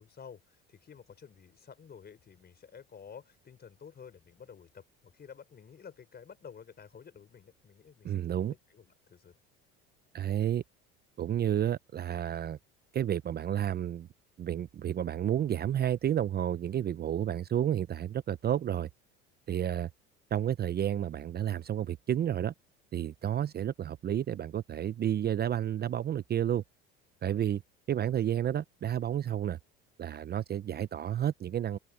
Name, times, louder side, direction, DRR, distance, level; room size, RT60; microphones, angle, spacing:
voice 1, 0.0-9.3, left 7 dB, 35° left, 5.1 m, -51 dB
voice 2, 8.0-8.5 10.1-10.6 11.2-12.6 12.9-14.1 14.4-18.9 19.5-19.9 20.3-22.5 22.9-26.6 27.2-27.6 27.9-29.6 30.0-31.8, right 10 dB, 35° right, 0.7 m, -31 dB
open air
hypercardioid pair, 85°, 29 cm